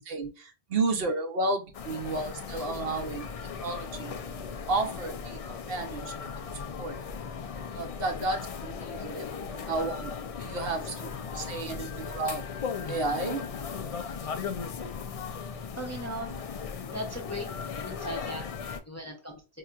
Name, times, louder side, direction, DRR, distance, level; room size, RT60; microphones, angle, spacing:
voice 1, 0.0-3.3 3.6-6.3 6.8-7.0 7.7-12.5 12.9-13.4, right 3 dB, 65° right, 5 dB, 0.9 m, -32 dB
sound 1, 1.7-18.8, left 6 dB, 55° left, 0.4 m, -37 dB
voice 2, 15.8-16.4 16.9-17.4 17.8-18.5 18.9-19.4, equal, 20° left, 1 dB, 0.6 m, -37 dB
4.5 x 2.8 x 2.3 m, 0.33 s
omnidirectional pair, 1.1 m